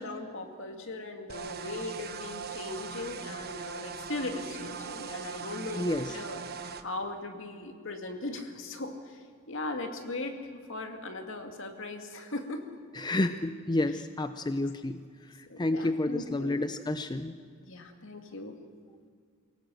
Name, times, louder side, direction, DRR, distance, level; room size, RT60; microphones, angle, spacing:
voice 1, 0.0-6.4 6.8-10.4 10.7-12.6 15.5-16.5 17.6-18.6, left 2 dB, 65° left, 5 dB, 2.3 m, -38 dB
sound 1, 1.3-6.8, right 6 dB, 50° right, 1.1 m, -40 dB
voice 2, 5.8-6.1 12.9-15.0 15.6-17.3, left 2 dB, 20° left, 10 dB, 0.6 m, -30 dB
24.5 x 17.5 x 7.7 m, 2.1 s
head